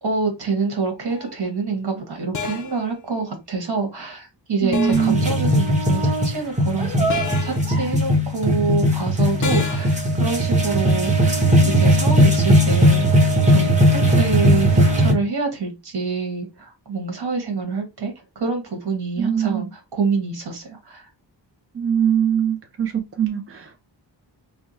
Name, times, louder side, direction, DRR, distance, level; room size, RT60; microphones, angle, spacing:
voice 1, 0.0-7.0 7.4-13.1 13.5-21.1, right 4 dB, 60° right, 1.6 m, -26 dB
sound 1, 1.1-1.3 2.3-2.8 4.7-5.2 7.1-7.7 9.4-10.0, left 6 dB, 45° left, 0.6 m, -30 dB
voice 2, 4.6-5.2 19.2-19.7 21.7-23.8, right 8 dB, 30° right, 0.4 m, -22 dB
sound 2, 4.9-15.1, equal, 15° right, 1.0 m, -18 dB
3.4 x 2.1 x 4.1 m
wide cardioid pair, 180°, 44 cm